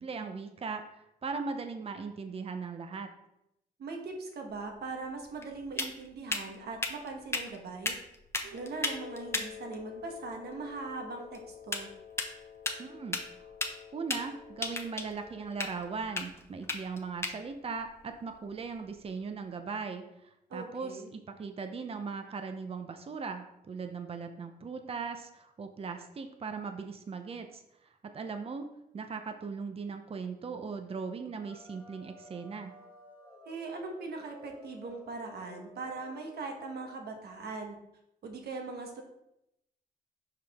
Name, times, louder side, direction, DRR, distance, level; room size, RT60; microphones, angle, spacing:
voice 1, 0.0-3.1 12.8-13.2 13.9-20.1 20.5-28.7 28.9-32.8, right 5 dB, 35° right, 6 dB, 0.6 m, -39 dB
voice 2, 3.8-8.0 8.4-11.9 20.5-21.1 33.4-37.8 38.2-39.0, right 3 dB, 75° right, 3 dB, 1.2 m, -40 dB
sound 1, 4.5-19.2, left 2 dB, 15° left, 0.8 m, -39 dB
Wind instrument woodwind instrument, 8.5-15.8, left 8 dB, 90° left, 0.5 m, -49 dB
sound 2, 31.4-37.0, left 1 dB, 10° right, 1.7 m, -53 dB
5.7 x 4.9 x 3.5 m, 0.83 s
cardioid pair, 85°, 17 cm